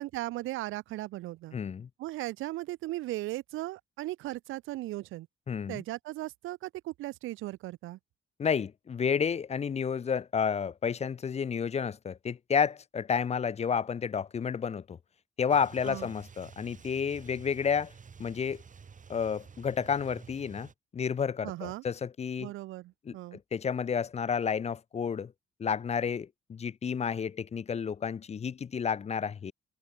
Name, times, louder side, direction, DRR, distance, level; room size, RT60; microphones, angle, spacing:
voice 1, 0.0-1.6 2.0-5.3 5.7-8.0 15.8-16.1 21.4-21.8 22.4-23.4, right 17 dB, 85° right, 0.6 m, -37 dB
voice 2, 1.5-1.9 5.5-5.8 8.4-15.0 15.4-17.9 18.2-18.6 19.1-22.5 23.1-25.3 25.6-29.5, left 6 dB, 35° left, 0.5 m, -31 dB
sound 1, 15.5-20.7, right 6 dB, 40° right, 3.8 m, -51 dB
cardioid pair, 90°, 20 cm